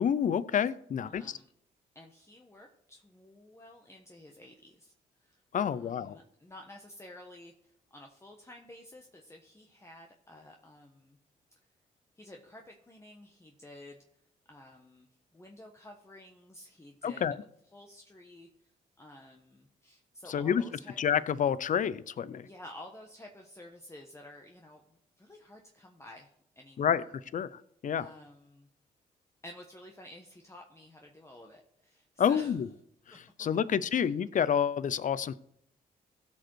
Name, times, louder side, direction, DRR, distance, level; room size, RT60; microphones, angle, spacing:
voice 1, 0.0-1.4 5.5-6.2 17.0-17.3 20.3-20.6 21.0-22.5 26.8-27.0 27.3-27.5 27.8-28.1 32.2-32.7 33.4-35.4, left 8 dB, 55° left, 18 dB, 0.6 m, -28 dB
voice 2, 1.0-1.5 1.9-5.4 5.7-11.2 12.2-14.0 14.5-17.2 17.7-18.7 19.0-21.0 22.4-27.1 27.9-28.7 29.4-32.6 33.1-33.2 33.7-34.1, left 1 dB, 15° left, 2 dB, 1.2 m, -52 dB
15.5 x 5.3 x 4.6 m, 0.73 s
supercardioid pair, 65°, 16 cm